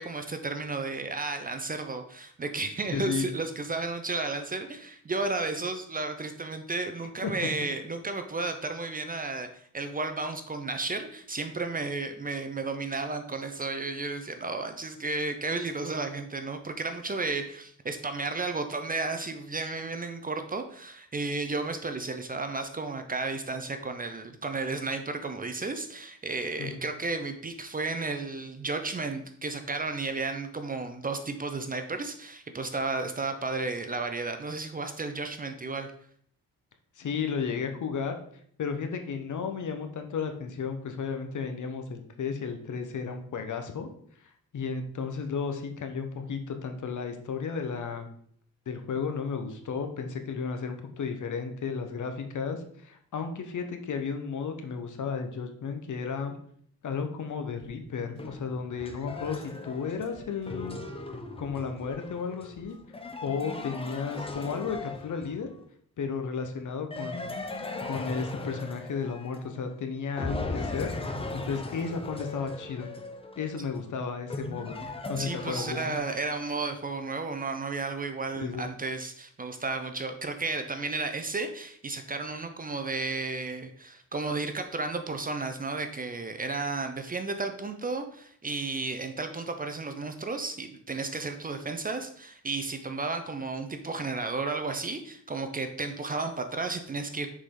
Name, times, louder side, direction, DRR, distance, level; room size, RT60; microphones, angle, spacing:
voice 1, 0.0-35.9 75.2-97.3, right 3 dB, 25° right, 7 dB, 0.6 m, -33 dB
voice 2, 2.9-3.3 7.2-7.3 26.6-26.8 37.0-38.2 38.6-43.9 44.2-48.1 48.7-56.3 56.8-60.8 61.4-62.8 63.2-65.5 66.0-67.4 67.8-70.9 71.3-72.9 73.4-74.8 75.1-76.0 78.3-78.7, left 5 dB, 60° left, 6 dB, 1.0 m, -33 dB
sound 1, 57.6-57.7 58.1-58.2 60.1-60.5 61.4-61.5 61.8-61.9 62.5-62.8 64.2-64.3 64.7-65.0, right 4 dB, 70° right, 2.0 m, -56 dB
sound 2, 58.2-65.6 66.9-69.8 70.2-76.6, left 2 dB, 15° left, 0.7 m, -38 dB
6.5 x 5.0 x 3.8 m, 0.62 s
cardioid pair, 120°, 35 cm